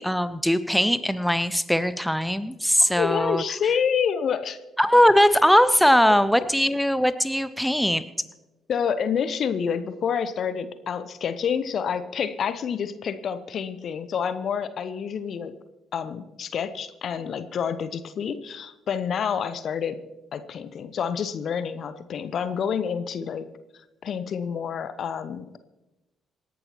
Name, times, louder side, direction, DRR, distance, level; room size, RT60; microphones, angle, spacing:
voice 1, 0.0-3.4 4.8-8.1, equal, ahead, 13 dB, 0.8 m, -20 dB
voice 2, 2.9-4.6 8.7-15.5 15.9-20.0 20.3-23.5 24.0-25.6, left 7 dB, 50° left, 13 dB, 0.8 m, -28 dB
27.0 x 11.0 x 3.0 m, 1.0 s
figure-of-eight pair, 40°, 0 cm